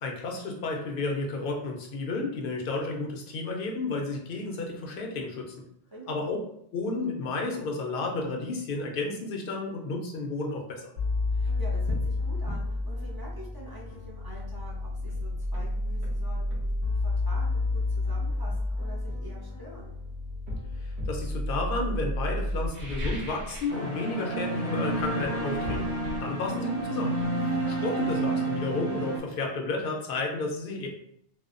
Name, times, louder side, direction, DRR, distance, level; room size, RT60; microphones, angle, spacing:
voice 1, 0.0-5.5 6.1-6.4 6.7-10.9 20.8-27.1 27.4-30.9, left 3 dB, 60° left, 1 dB, 0.7 m, -32 dB
voice 2, 5.9-6.3 11.3-19.9 27.4-27.8, equal, 30° right, -6 dB, 0.5 m, -46 dB
sound 1, 11.0-22.7, left 2 dB, 80° right, 1.3 m, -30 dB
sound 2, 11.1-11.3 11.9-12.1 12.5-12.7 14.6-14.7 15.1-16.7 17.8-18.0 18.5-19.9 20.5-21.3 22.6-23.8 24.1-24.5 24.8-28.4 28.6-28.7, left 1 dB, 50° right, 0.9 m, -39 dB
sound 3, 23.7-29.2, right 2 dB, 15° left, 0.6 m, -30 dB
2.7 x 2.1 x 2.4 m, 0.71 s
omnidirectional pair, 1.1 m